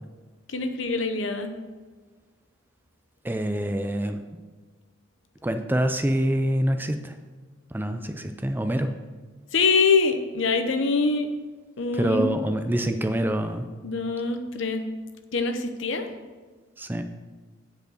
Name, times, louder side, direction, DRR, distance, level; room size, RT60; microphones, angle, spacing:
voice 1, 0.5-1.5 9.5-11.3 11.8-12.4 13.8-14.8 15.3-16.1, left 4 dB, 65° left, 7 dB, 0.8 m, -24 dB
voice 2, 3.2-4.2 5.4-7.2 7.7-8.9 11.9-13.7 16.8-17.0, right 1 dB, 10° right, 7 dB, 0.4 m, -26 dB
9.2 x 5.2 x 6.4 m, 1.3 s
head